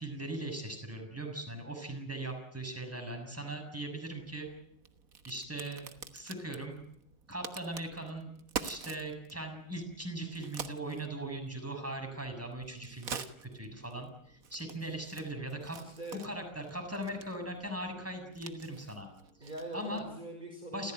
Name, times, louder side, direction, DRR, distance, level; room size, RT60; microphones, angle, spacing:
voice 1, 0.0-4.5 5.3-6.8 7.3-15.8 16.1-19.1 19.4-20.0 20.7-20.9, right 1 dB, 5° right, 4 dB, 6.9 m, -40 dB
Crack, 4.1-20.2, right 6 dB, 50° right, 1.7 m, -47 dB
voice 2, 15.8-16.2 19.4-20.9, right 1 dB, 25° right, 2 dB, 5.5 m, -43 dB
29.0 x 15.5 x 9.4 m, 0.71 s
omnidirectional pair, 2.1 m